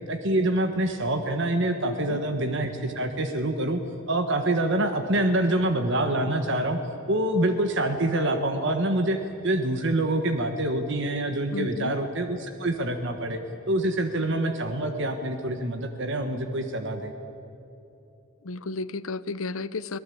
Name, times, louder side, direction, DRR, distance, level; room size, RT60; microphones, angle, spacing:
voice 1, 0.1-3.8 4.1-6.8 7.1-9.2 9.4-13.4 13.7-17.1, right 1 dB, 60° right, 7 dB, 1.4 m, -26 dB
voice 2, 1.8-2.2 11.5-11.9 18.4-20.0, left 3 dB, 75° left, 17 dB, 0.8 m, -33 dB
25.0 x 18.5 x 8.6 m, 2.9 s
head